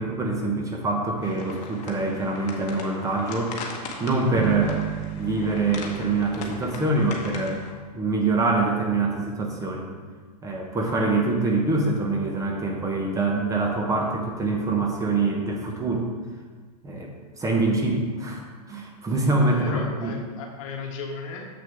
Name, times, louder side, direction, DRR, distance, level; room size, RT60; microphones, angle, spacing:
voice 1, 0.0-3.6 4.0-4.8 5.2-7.6 7.9-9.9 10.4-16.1 16.8-17.1 17.4-18.4 18.7-20.1, right 3 dB, 15° right, 0 dB, 1.1 m, -25 dB
sound 1, 1.2-7.7, left 4 dB, 35° left, 1.3 m, -39 dB
Bass guitar, 4.3-7.4, right 12 dB, 50° right, 0.4 m, -34 dB
voice 2, 19.4-21.5, left 4 dB, 55° left, 2 dB, 1.3 m, -35 dB
7.2 x 6.3 x 3.6 m, 1.5 s
hypercardioid pair, 105°, 21 cm